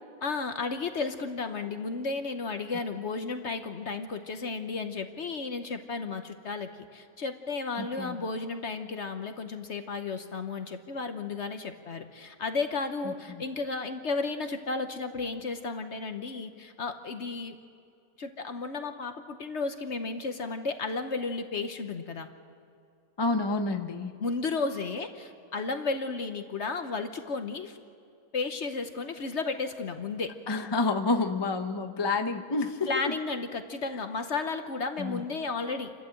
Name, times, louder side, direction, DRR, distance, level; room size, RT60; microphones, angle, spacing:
voice 1, 0.2-17.6 18.2-22.3 24.2-27.8 28.3-30.3 32.9-35.9, left 4 dB, 50° left, 7 dB, 1.1 m, -33 dB
voice 2, 7.8-8.2 13.3-13.4 23.2-24.1 30.5-33.1 35.0-35.2, left 3 dB, 20° left, 6 dB, 0.7 m, -29 dB
29.0 x 12.5 x 7.7 m, 2.5 s
omnidirectional pair, 1.7 m